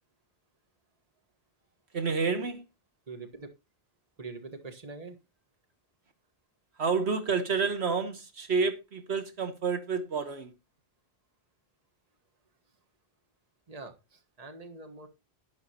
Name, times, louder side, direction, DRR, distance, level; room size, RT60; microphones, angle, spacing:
voice 1, 1.9-2.6 6.8-10.5, right 5 dB, 80° right, 1.5 m, -29 dB
voice 2, 3.1-3.5 4.2-5.2 13.7-15.1, right 3 dB, 35° right, 1.4 m, -44 dB
11.0 x 10.0 x 2.8 m
omnidirectional pair, 1.1 m